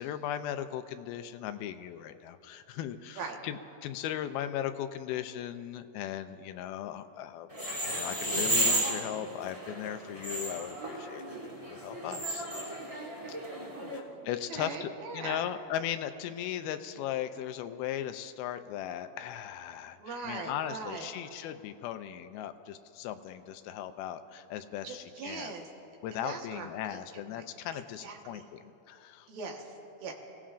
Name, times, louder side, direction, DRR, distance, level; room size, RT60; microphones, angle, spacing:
voice 1, 0.0-7.5 7.8-12.7 13.9-25.5 26.0-29.3, left 10 dB, 85° left, 10 dB, 2.5 m, -38 dB
sound 1, 7.5-14.0, right 1 dB, 20° right, 0.9 m, -33 dB
voice 2, 13.8-15.5 20.0-21.1 24.8-25.7 26.1-27.4 27.7-28.5 29.3-30.1, right 4 dB, 75° right, 1 dB, 3.1 m, -41 dB
28.5 x 17.0 x 2.5 m, 2.8 s
omnidirectional pair, 4.3 m